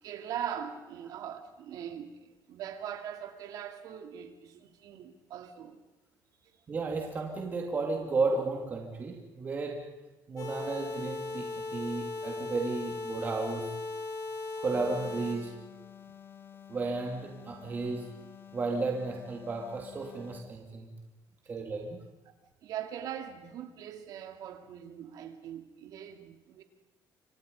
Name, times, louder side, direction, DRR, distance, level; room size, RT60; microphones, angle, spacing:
voice 1, 0.0-5.8 6.4-6.5 22.6-26.6, right 9 dB, 60° right, 2.6 m, -41 dB
voice 2, 6.7-9.9 10.3-13.8 14.6-15.6 16.7-18.1 18.5-20.9 21.5-22.0, right 3 dB, 25° right, 2.5 m, -33 dB
sound 1, 10.4-15.4, left 3 dB, 50° left, 6.6 m, -37 dB
sound 2, 14.7-20.6, left 9 dB, 35° left, 1.6 m, -51 dB
28.5 x 25.0 x 5.4 m
cardioid pair, 175°, 7 cm